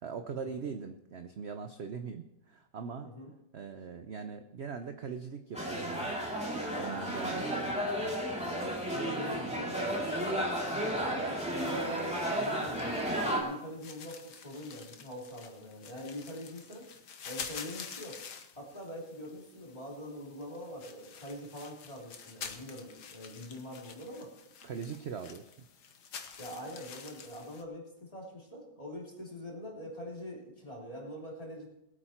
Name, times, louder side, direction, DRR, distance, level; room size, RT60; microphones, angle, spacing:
voice 1, 0.0-3.1 3.5-6.1 6.7-8.2 24.6-25.6, right 6 dB, 55° right, 7 dB, 0.7 m, -41 dB
sound 1, 5.5-13.4, right 1 dB, 5° right, 2.7 m, -33 dB
voice 2, 6.9-7.3 8.4-10.5 10.9-16.9 17.2-18.2 18.5-24.3 26.4-31.7, equal, 20° left, -3 dB, 3.2 m, -44 dB
sound 2, 11.5-27.6, left 6 dB, 65° left, 1.7 m, -48 dB
20.5 x 8.7 x 4.4 m, 0.88 s
omnidirectional pair, 1.9 m